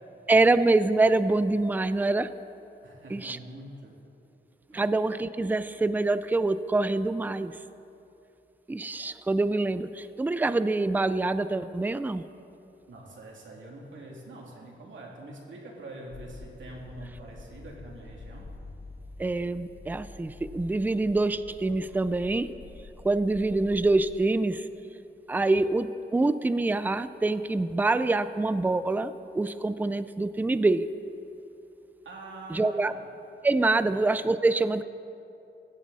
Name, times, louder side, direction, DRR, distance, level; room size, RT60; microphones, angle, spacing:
voice 1, 0.3-2.3 3.1-3.4 4.7-7.6 8.7-12.2 19.2-22.5 23.0-24.7 25.3-30.9 32.5-32.9 33.4-34.8, right 2 dB, 10° right, 13 dB, 0.4 m, -25 dB
voice 2, 2.8-4.0 4.7-4.8 12.9-18.5 32.0-33.0 33.7-33.9, right 2 dB, 80° right, -2 dB, 2.8 m, -44 dB
sound 1, 16.1-24.1, left 2 dB, 50° left, 2.7 m, -47 dB
15.5 x 15.5 x 4.1 m, 2.7 s
wide cardioid pair, 140°, 20 cm